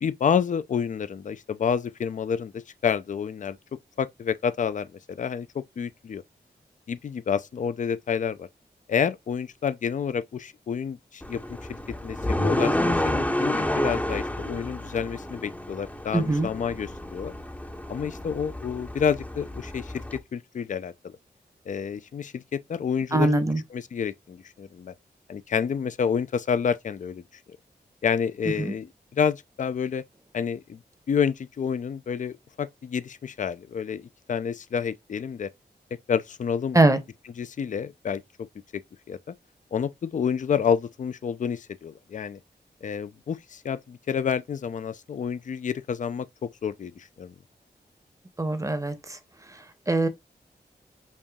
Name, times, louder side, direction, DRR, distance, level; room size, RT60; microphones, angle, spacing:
voice 1, 0.0-3.6 4.0-6.2 6.9-8.5 8.9-17.3 17.9-21.2 21.7-23.4 23.7-24.9 25.3-27.2 28.0-30.0 30.3-30.8 31.1-35.5 36.1-36.8 37.4-38.5 38.7-38.8 39.1-39.4 39.7-42.4 42.8-47.3, left 7 dB, 45° left, 0.4 m, -29 dB
sound 1, 11.2-20.2, left 1 dB, 10° left, 0.6 m, -30 dB
voice 2, 16.1-16.5 23.1-23.6 28.6-28.7 36.7-37.0 48.4-49.2 49.9-50.1, right 2 dB, 20° right, 0.8 m, -22 dB
5.3 x 2.6 x 2.2 m
cardioid pair, 50°, 18 cm